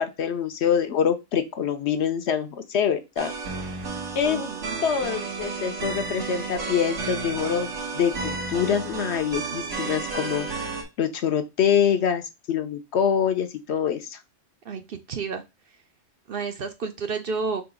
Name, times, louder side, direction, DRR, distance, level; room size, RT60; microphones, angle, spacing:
voice 1, 0.0-3.3 4.2-4.5 4.8-10.5 11.0-14.2, left 8 dB, 65° left, 9 dB, 0.9 m, -25 dB
sound 1, 3.2-10.8, right 4 dB, 75° right, 1.5 m, -32 dB
voice 2, 4.2-4.8 14.6-15.4 16.3-17.6, right 5 dB, 55° right, 7 dB, 0.7 m, -31 dB
3.9 x 2.8 x 4.8 m, 0.24 s
omnidirectional pair, 1.3 m